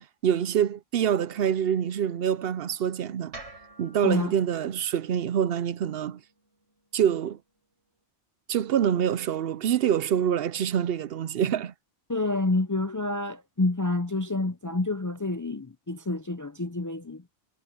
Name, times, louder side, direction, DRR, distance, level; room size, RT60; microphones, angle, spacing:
voice 1, 0.0-3.3 3.8-6.2 6.9-7.4 8.5-11.7, right 9 dB, 65° right, 0.8 m, -26 dB
sound 1, 3.3-7.5, right 2 dB, 85° right, 6.8 m, -50 dB
voice 2, 12.1-17.2, left 2 dB, 30° left, 0.4 m, -28 dB
omnidirectional pair, 1.1 m